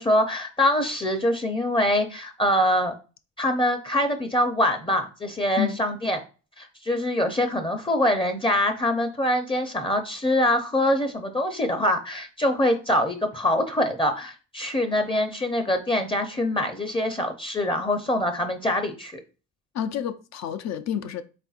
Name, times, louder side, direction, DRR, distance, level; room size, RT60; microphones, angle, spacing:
voice 1, 0.0-2.9 3.4-6.2 6.6-19.2, left 1 dB, 15° left, 0.6 m, -24 dB
voice 2, 19.7-21.2, left 9 dB, 60° left, 0.5 m, -29 dB
4.2 x 3.5 x 2.4 m
cardioid pair, 90°, 30 cm